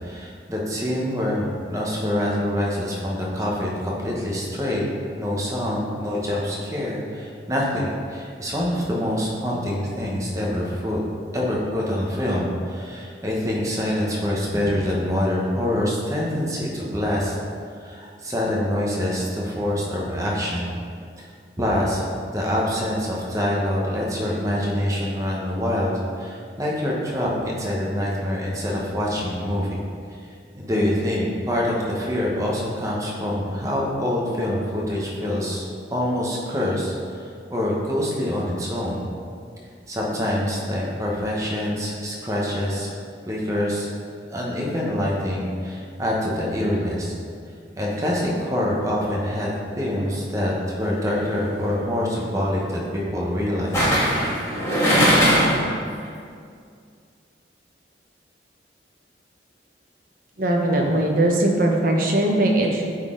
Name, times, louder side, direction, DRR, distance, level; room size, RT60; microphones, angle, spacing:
voice 1, 0.0-4.8 5.2-11.0 11.3-17.3 17.8-20.7 21.2-21.3 21.6-29.7 30.6-39.0 39.9-42.9 43.3-43.9 44.3-47.1 47.8-49.5 49.8-54.0, left 1 dB, 20° right, -4 dB, 1.0 m, -25 dB
sound 1, 51.1-51.4 53.7-55.7 56.0-56.1, equal, 15° left, 1.5 m, -19 dB
voice 2, 60.4-62.8, right 1 dB, 50° right, 0 dB, 0.9 m, -20 dB
8.8 x 4.1 x 3.8 m, 2.3 s
head